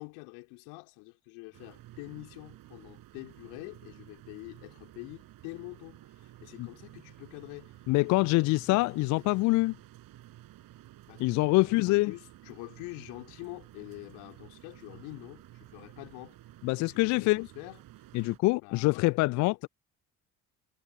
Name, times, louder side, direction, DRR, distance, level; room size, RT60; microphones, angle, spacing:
voice 1, 0.0-7.8 8.0-8.8 9.2-9.4 11.1-11.3 11.6-16.4 16.8-17.8 18.6-19.7, left 33 dB, 65° left, 3.7 m, -46 dB
sound 1, 1.5-18.4, right 15 dB, 55° right, 4.4 m, -53 dB
voice 2, 7.9-9.7 11.2-12.1 16.6-17.5 18.1-19.7, left 22 dB, 45° left, 0.5 m, -25 dB
figure-of-eight pair, 55°, 42 cm